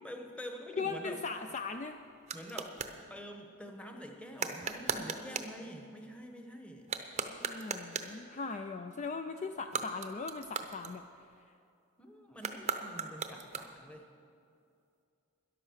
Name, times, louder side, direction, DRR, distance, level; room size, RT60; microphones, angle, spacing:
voice 1, 0.0-1.2 2.3-2.8 3.1-6.9 12.0-14.1, equal, 5° left, 3 dB, 1.0 m, -46 dB
voice 2, 0.8-2.0 7.3-11.0, left 4 dB, 30° left, 7 dB, 0.3 m, -39 dB
sound 1, 1.3-3.0 4.4-5.6 6.8-8.2 9.6-11.4 12.4-14.0, right 5 dB, 30° right, 0.7 m, -39 dB
13.0 x 11.0 x 6.4 m, 2.5 s
head